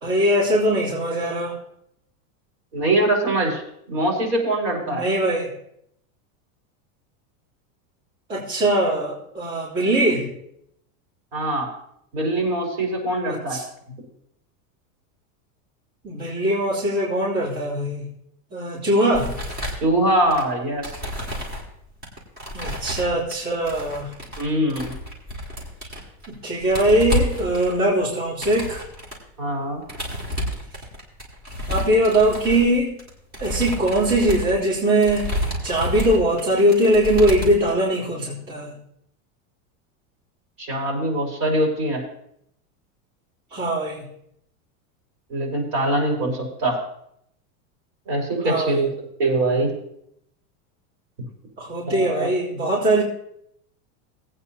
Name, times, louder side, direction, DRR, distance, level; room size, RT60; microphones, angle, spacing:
voice 1, 0.0-1.5 4.9-5.5 8.3-10.3 13.3-13.7 16.0-18.1 18.5-19.4 22.5-24.1 26.3-28.8 31.7-33.0 33.4-35.3 35.6-38.7 43.5-44.0 48.4-48.9 51.6-53.0, right 1 dB, 35° right, -8 dB, 3.2 m, -21 dB
voice 2, 2.7-3.6 3.9-5.0 11.3-11.7 12.1-13.6 19.8-20.9 24.4-25.0 29.4-29.8 40.6-42.0 45.3-46.8 48.1-48.9 49.2-49.7 51.9-52.3, right 1 dB, 65° right, -1 dB, 4.6 m, -23 dB
sound 1, 19.1-20.4 20.8-21.7 22.0-23.3 23.7-24.4 24.7-26.3 26.6-29.2 29.8-37.7, equal, 20° right, 2.4 m, -30 dB
19.0 x 8.8 x 2.9 m, 0.73 s
supercardioid pair, 175°, 41 cm